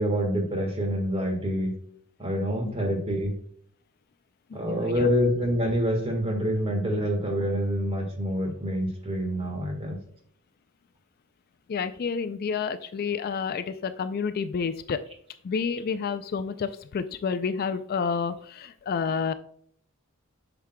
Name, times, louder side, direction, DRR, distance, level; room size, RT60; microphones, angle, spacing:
voice 1, 0.0-1.7 2.2-3.4 4.5-10.0, equal, 25° right, 3 dB, 1.5 m, -26 dB
voice 2, 4.5-5.1 11.7-15.0 15.4-19.3, left 5 dB, 45° left, 10 dB, 0.3 m, -29 dB
8.3 x 5.9 x 2.2 m, 0.63 s
head